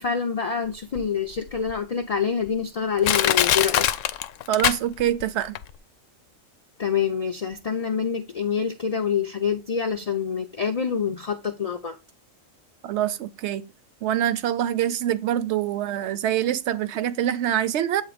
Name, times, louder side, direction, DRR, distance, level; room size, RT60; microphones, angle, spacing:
voice 1, 0.0-3.8 6.8-12.0, left 7 dB, 40° left, 0.5 m, -26 dB
Crushing, 1.0-1.1 1.7-1.8 2.5-2.6 3.0-5.2 5.6-5.7, left 11 dB, 75° left, 0.9 m, -22 dB
voice 2, 4.5-5.5 12.8-13.6 14.0-18.0, right 11 dB, 65° right, 0.8 m, -25 dB
8.2 x 3.0 x 5.0 m
omnidirectional pair, 1.4 m